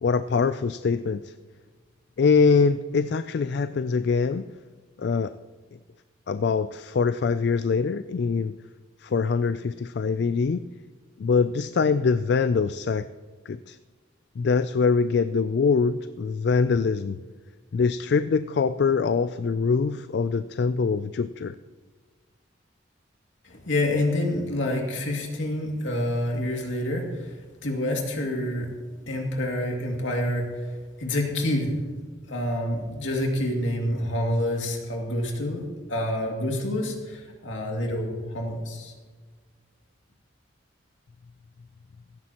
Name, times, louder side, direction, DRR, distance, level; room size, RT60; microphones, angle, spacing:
voice 1, 0.0-1.3 2.2-4.5 5.0-5.3 6.3-8.5 9.0-10.6 11.2-13.1 13.5-13.8 14.4-17.2 17.7-21.5, left 5 dB, 55° left, 12 dB, 0.3 m, -23 dB
voice 2, 23.4-28.7 29.1-30.7 31.0-31.8 32.3-38.9, left 1 dB, 75° left, 1 dB, 2.4 m, -28 dB
16.5 x 13.5 x 3.0 m, 1.4 s
head